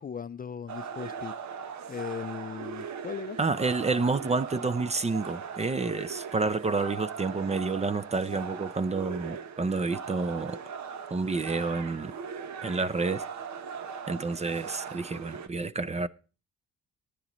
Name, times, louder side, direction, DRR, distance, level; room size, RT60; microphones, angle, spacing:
voice 1, 0.0-1.3 1.9-3.4, left 7 dB, 30° left, 0.5 m, -38 dB
sound 1, 0.7-15.5, right 6 dB, 65° right, 1.0 m, -39 dB
voice 2, 3.4-10.6 11.1-12.1 12.6-13.3 14.1-16.1, right 3 dB, 20° right, 0.6 m, -29 dB
18.0 x 9.9 x 3.0 m
cardioid pair, 90°, 30 cm